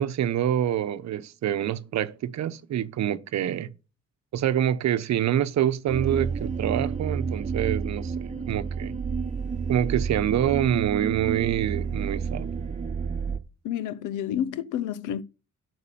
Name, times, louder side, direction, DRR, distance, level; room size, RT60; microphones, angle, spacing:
voice 1, 0.0-3.7 4.3-8.9 9.7-12.5, right 11 dB, 65° right, 0.8 m, -26 dB
sound 1, 5.9-13.4, right 5 dB, 25° right, 1.0 m, -30 dB
voice 2, 13.6-15.2, left 10 dB, 90° left, 0.7 m, -30 dB
8.4 x 6.7 x 6.8 m
cardioid pair, 90°, 30 cm